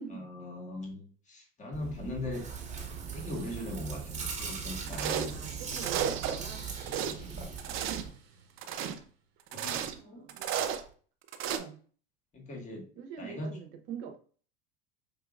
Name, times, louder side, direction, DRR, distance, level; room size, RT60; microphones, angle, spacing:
voice 1, 0.1-2.4 3.1-5.4 7.1-7.5 9.5-10.2 12.3-12.9 13.2-13.6, left 1 dB, 25° left, 0 dB, 1.6 m, -40 dB
Chewing mastication, 1.7-8.1, right 6 dB, 25° right, 1.3 m, -40 dB
sound 1, 2.2-9.1, right 6 dB, 85° right, 0.8 m, -48 dB
sound 2, 4.9-5.4 5.7-6.4 6.7-7.1 7.6-8.1 8.6-9.0 9.5-10.0 10.3-10.8 11.3-11.6, right 8 dB, 45° right, 0.6 m, -33 dB
voice 2, 5.2-7.7 9.9-10.8 11.5-11.8 13.0-14.2, right 7 dB, 65° right, 5 dB, 1.0 m, -45 dB
5.5 x 2.9 x 2.4 m, 0.42 s
hypercardioid pair, 85°, 30 cm